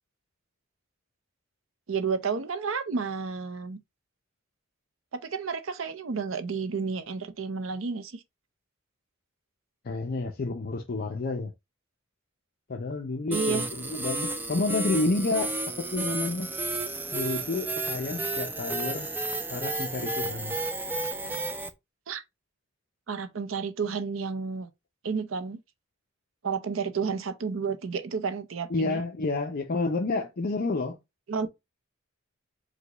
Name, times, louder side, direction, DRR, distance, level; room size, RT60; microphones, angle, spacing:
voice 1, 1.9-3.8 5.1-8.2 13.3-13.7 22.1-22.2 23.1-24.7 25.0-25.6 26.4-29.0 31.3-31.5, right 5 dB, 70° right, 0.6 m, -31 dB
voice 2, 9.8-11.5 12.7-16.5 17.1-19.1 19.5-20.6 28.7-31.0, left 3 dB, 45° left, 0.5 m, -30 dB
sound 1, 13.3-21.7, right 2 dB, 10° right, 0.4 m, -32 dB
4.9 x 2.2 x 3.8 m
head